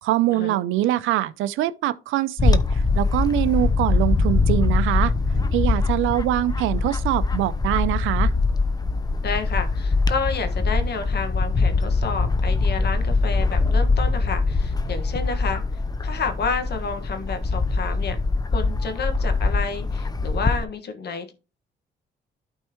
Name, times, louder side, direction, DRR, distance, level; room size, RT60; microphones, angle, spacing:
voice 1, 0.0-5.1 5.5-8.3, right 14 dB, 90° right, 0.6 m, -23 dB
Bird / Wind, 2.4-20.6, left 3 dB, 20° left, 0.7 m, -22 dB
voice 2, 9.2-15.6 16.0-18.2 18.5-21.3, left 4 dB, 55° left, 1.6 m, -30 dB
12.0 x 4.5 x 3.0 m
cardioid pair, 90°, 20 cm